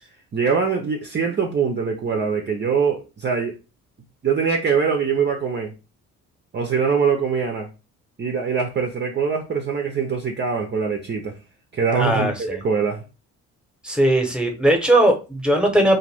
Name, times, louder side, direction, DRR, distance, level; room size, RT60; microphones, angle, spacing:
voice 1, 0.3-3.5 4.2-5.7 6.5-7.7 8.2-11.3 11.7-13.0, right 6 dB, 30° right, 0.5 m, -23 dB
voice 2, 12.0-12.6 13.8-16.0, right 1 dB, 5° right, 0.9 m, -19 dB
2.4 x 2.2 x 3.3 m
supercardioid pair, 60°, 35 cm